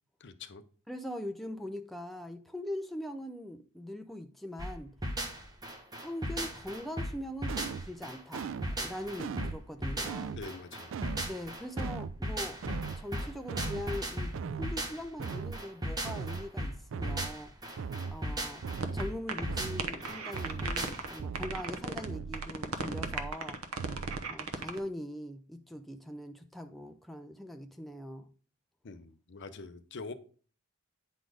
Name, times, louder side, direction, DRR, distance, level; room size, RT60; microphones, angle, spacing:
voice 1, 0.2-0.6 10.4-10.9 28.8-30.1, left 3 dB, 55° left, 0.6 m, -44 dB
voice 2, 0.9-4.9 6.0-8.5 8.8-10.4 11.2-12.6 13.0-18.6 18.9-23.6 24.3-28.3, left 1 dB, ahead, 0.4 m, -41 dB
sound 1, 4.6-21.2, equal, 20° right, 1.2 m, -37 dB
sound 2, 7.5-7.9 8.3-8.8 9.2-9.6 10.1-10.5 10.9-11.3 11.8-12.2 12.6-13.0 13.5-13.9 14.3-14.8 15.2-15.6 16.1-16.5 16.9-17.3 17.8-18.2 18.6-19.1 19.5-19.9 20.3-20.8 21.2-21.6 22.1-22.5 22.9-23.4 23.8-24.2, right 5 dB, 65° right, 0.4 m, -38 dB
sound 3, 18.8-19.0 19.3-19.4 19.8-21.1 21.3-22.1 22.3-24.8, right 4 dB, 90° right, 0.9 m, -35 dB
9.2 x 4.1 x 4.8 m
head